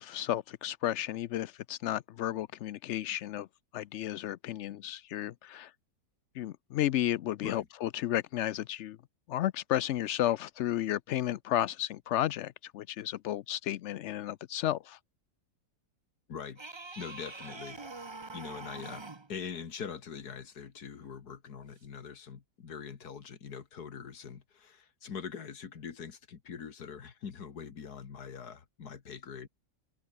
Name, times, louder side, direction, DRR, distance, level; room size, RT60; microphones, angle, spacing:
voice 1, 0.0-3.5 3.7-5.7 6.4-9.0 9.3-15.0, left 12 dB, 85° left, 0.6 m, -33 dB
voice 2, 16.3-16.6 17.0-17.8 18.3-29.5, left 6 dB, 70° left, 2.3 m, -43 dB
sound 1, 16.6-19.3 21.8-21.9, right 3 dB, 20° right, 1.0 m, -44 dB
omnidirectional pair, 1.8 m